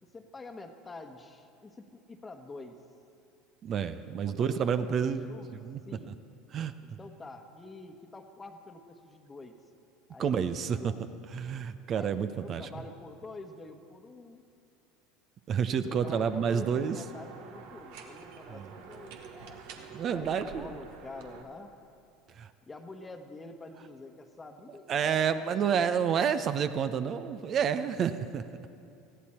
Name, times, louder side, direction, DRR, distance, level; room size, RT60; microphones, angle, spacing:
voice 1, 0.0-2.8 4.2-5.5 5.9-6.1 6.8-9.6 10.1-11.0 11.9-14.4 15.9-21.7 22.7-26.3 28.3-28.6, left 2 dB, 20° left, 5 dB, 1.2 m, -47 dB
voice 2, 3.6-5.2 5.6-5.8 6.1-6.2 6.5-6.7 10.2-10.9 11.3-12.7 15.5-17.0 18.5-18.7 19.9-20.7 22.4-22.5 24.9-28.4, right 7 dB, 45° right, 11 dB, 0.7 m, -29 dB
sound 1, 16.0-21.4, right 6 dB, 65° right, 1.4 m, -48 dB
19.5 x 15.0 x 4.4 m, 2.6 s
hypercardioid pair, 75°, 0 cm